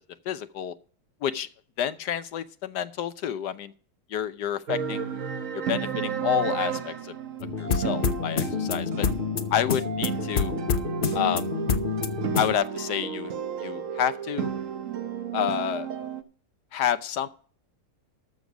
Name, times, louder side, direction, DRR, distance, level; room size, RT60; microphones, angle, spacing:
voice 1, 0.3-0.7 1.2-1.5 1.8-3.7 4.1-5.2 5.5-7.1 7.6-9.1 9.5-10.5 11.1-11.5 12.4-13.3 13.6-14.5 15.3-15.9 16.7-17.3, left 9 dB, 70° left, 13 dB, 1.3 m, -29 dB
sound 1, 4.7-16.2, right 7 dB, 50° right, 1.2 m, -33 dB
sound 2, 7.4-12.5, left 6 dB, 45° left, 0.7 m, -28 dB
13.5 x 6.4 x 5.1 m, 0.43 s
omnidirectional pair, 1.9 m